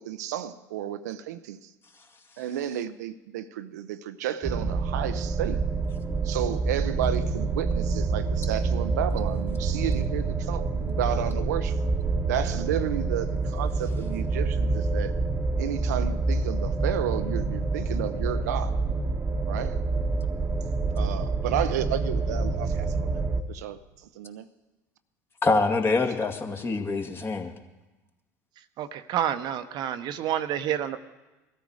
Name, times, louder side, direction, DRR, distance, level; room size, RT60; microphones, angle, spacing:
voice 1, 0.0-1.7 2.4-5.6 6.2-11.8 12.3-15.2 15.6-18.8 19.5-19.8 21.0-23.2 23.5-23.8 24.2-24.5, right 10 dB, 75° right, 0.7 m, -32 dB
sound 1, 4.4-23.4, right 3 dB, 25° right, 1.3 m, -27 dB
voice 2, 25.4-27.5, left 3 dB, 25° left, 2.1 m, -25 dB
voice 3, 28.8-31.0, right 10 dB, 55° right, 1.0 m, -29 dB
21.0 x 13.5 x 4.9 m
hypercardioid pair, 70°, 9 cm